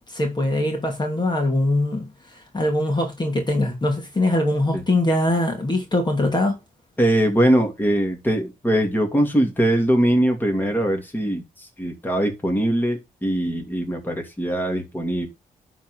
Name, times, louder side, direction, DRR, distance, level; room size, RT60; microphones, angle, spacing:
voice 1, 0.1-6.5, left 1 dB, 30° left, 2.8 m, -22 dB
voice 2, 7.0-15.3, right 1 dB, 15° left, 2.9 m, -21 dB
11.0 x 4.2 x 6.5 m
cardioid pair, 70°, 15 cm